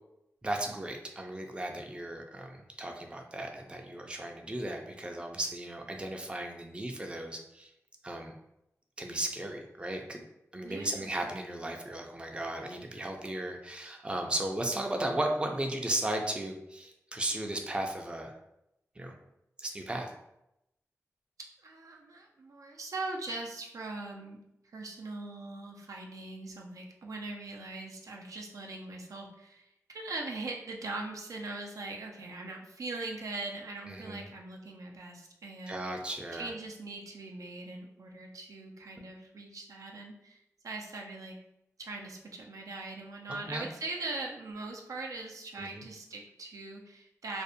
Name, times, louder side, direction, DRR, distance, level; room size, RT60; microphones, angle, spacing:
voice 1, 0.4-7.7 8.0-8.3 9.0-10.2 10.5-18.3 19.0-19.1 19.6-20.1 33.8-34.3 35.7-36.5 43.5-43.7 45.6-45.8, right 1 dB, 20° right, 3 dB, 0.3 m, -35 dB
voice 2, 10.6-11.1 21.6-24.4 24.7-36.0 36.3-41.4 41.8-47.4, right 2 dB, 85° right, 0 dB, 0.4 m, -41 dB
2.5 x 2.0 x 2.6 m, 0.85 s
wide cardioid pair, 70°, 6 cm